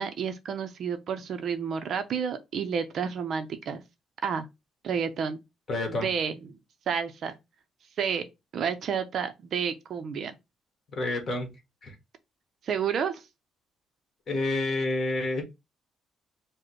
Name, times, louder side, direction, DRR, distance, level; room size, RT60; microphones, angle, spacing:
voice 1, 0.0-3.8 4.2-4.5 4.8-5.4 5.9-6.3 6.9-7.4 8.0-8.2 8.5-10.3 12.6-13.2, right 7 dB, 45° right, 0.6 m, -30 dB
voice 2, 5.7-6.1 11.0-11.5 11.8-11.9 14.3-15.4, left 2 dB, 30° left, 1.5 m, -28 dB
4.9 x 2.1 x 4.5 m
cardioid pair, 165°, 0 cm